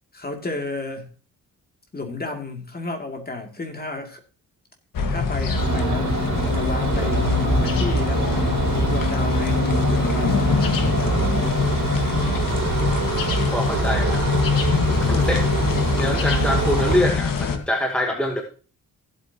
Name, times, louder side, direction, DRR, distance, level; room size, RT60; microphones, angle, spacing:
voice 1, 0.1-1.1 1.9-4.2 5.1-8.4 8.7-11.6, left 2 dB, 25° left, 3 dB, 2.6 m, -32 dB
sound 1, 4.9-17.6, left 5 dB, 70° left, 1.7 m, -24 dB
sound 2, 5.5-17.0, right 3 dB, 50° right, 3.1 m, -25 dB
voice 2, 13.2-14.3 14.8-15.4 15.9-18.4, left 1 dB, 5° left, 3 dB, 1.2 m, -25 dB
15.5 x 8.3 x 2.9 m, 0.39 s
wide cardioid pair, 130°, 35 cm